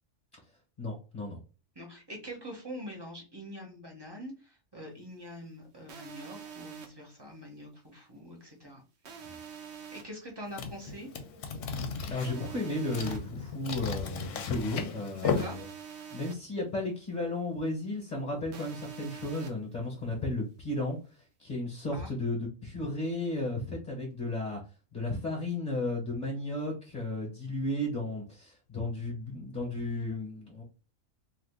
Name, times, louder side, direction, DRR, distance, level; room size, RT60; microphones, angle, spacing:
voice 1, 0.8-1.4 9.3-9.4 12.1-15.7 16.1-21.0 21.4-24.6 24.9-30.6, left 2 dB, 35° left, 0 dB, 1.0 m, -34 dB
voice 2, 1.7-8.8 9.9-11.1 15.1-15.6 21.9-22.1, equal, 20° right, 0 dB, 0.8 m, -44 dB
sound 1, 5.9-6.9 9.0-10.0 12.2-13.2 15.4-16.3 18.5-19.5, right 7 dB, 60° right, 0.9 m, -45 dB
sound 2, 10.5-15.4, left 5 dB, 70° left, 0.9 m, -35 dB
2.7 x 2.4 x 3.5 m, 0.34 s
omnidirectional pair, 1.4 m